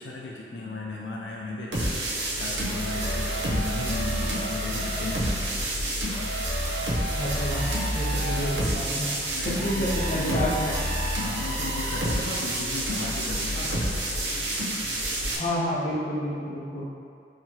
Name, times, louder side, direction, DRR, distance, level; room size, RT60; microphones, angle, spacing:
voice 1, 0.0-5.7 9.1-10.8 11.2-14.6, left 2 dB, 80° left, -3 dB, 0.4 m, -36 dB
sound 1, 1.7-15.4, right 1 dB, 70° right, 0.7 m, -28 dB
voice 2, 7.1-9.1 9.6-10.5 15.3-16.9, equal, 40° left, -8 dB, 0.8 m, -29 dB
4.5 x 2.8 x 2.8 m, 2.4 s
head